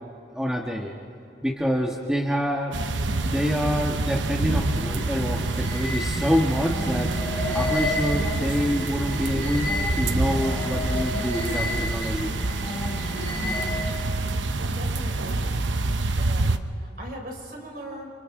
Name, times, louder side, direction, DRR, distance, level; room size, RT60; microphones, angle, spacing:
voice 1, 0.3-0.9 1.4-2.8 3.2-7.1 7.5-12.3, equal, 5° right, -1 dB, 1.4 m, -26 dB
sound 1, 2.7-16.6, right 2 dB, 90° right, 0.9 m, -27 dB
sound 2, 4.4-14.2, left 1 dB, 10° left, 3.1 m, -31 dB
voice 2, 14.7-15.5 16.2-18.1, right 1 dB, 50° right, -1 dB, 5.2 m, -39 dB
29.5 x 28.0 x 3.8 m, 2.6 s
head